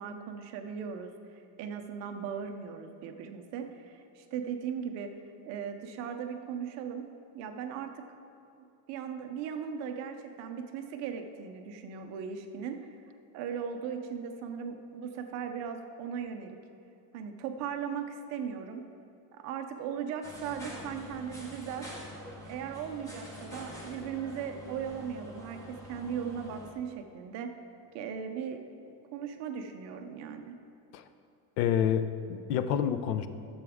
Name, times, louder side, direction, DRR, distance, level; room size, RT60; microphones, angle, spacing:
voice 1, 0.0-5.1 5.5-7.1 7.3-8.0 8.6-13.0 13.3-16.6 17.1-18.8 19.3-21.9 22.5-27.5 27.9-30.5, right 7 dB, 35° right, 5 dB, 0.5 m, -38 dB
sound 1, 20.2-26.7, equal, 5° left, 0.8 m, -45 dB
voice 2, 31.6-33.3, left 9 dB, 85° left, 11 dB, 0.7 m, -28 dB
12.5 x 6.9 x 3.5 m, 2.7 s
cardioid pair, 170°, 47 cm